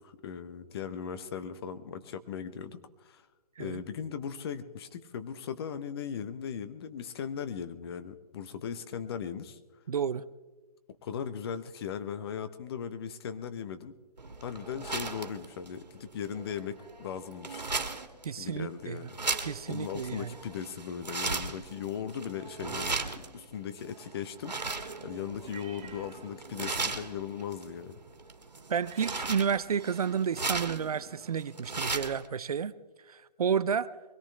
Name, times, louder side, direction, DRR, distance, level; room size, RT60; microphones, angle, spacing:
voice 1, 0.0-3.2 3.6-9.6 11.0-13.9 14.4-17.7 18.4-19.2 19.7-24.5 25.0-28.0, left 7 dB, 35° left, 11 dB, 0.9 m, -38 dB
voice 2, 9.9-10.3 18.2-19.0 19.4-20.4 28.7-32.7 33.1-33.9, right 7 dB, 65° right, 16 dB, 0.6 m, -31 dB
sound 1, 14.2-32.3, right 3 dB, 85° right, 1.7 m, -37 dB
sound 2, 25.4-26.6 27.0-27.3 28.4-30.3, right 7 dB, 25° right, 2.5 m, -52 dB
23.0 x 17.5 x 3.4 m, 1.3 s
figure-of-eight pair, 140°, 21 cm